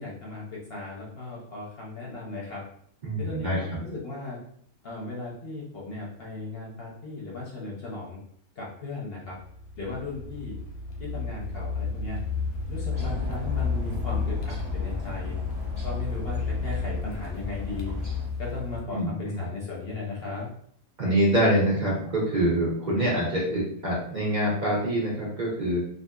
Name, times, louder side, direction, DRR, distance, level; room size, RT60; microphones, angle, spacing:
voice 1, 0.0-2.6 3.2-4.4 4.8-8.2 8.6-9.4 9.8-10.6 11.0-12.2 12.7-15.4 15.8-17.9 18.4-20.5, left 3 dB, 55° left, -4 dB, 0.7 m, -36 dB
voice 2, 3.0-3.8 18.9-19.4 21.0-25.8, right 1 dB, 50° right, -4 dB, 0.6 m, -25 dB
Car, 9.3-18.8, left 4 dB, 80° left, 1.0 m, -32 dB
sound 1, 12.9-18.3, left 3 dB, 25° right, 1.1 m, -35 dB
2.7 x 2.4 x 2.2 m, 0.63 s
omnidirectional pair, 1.5 m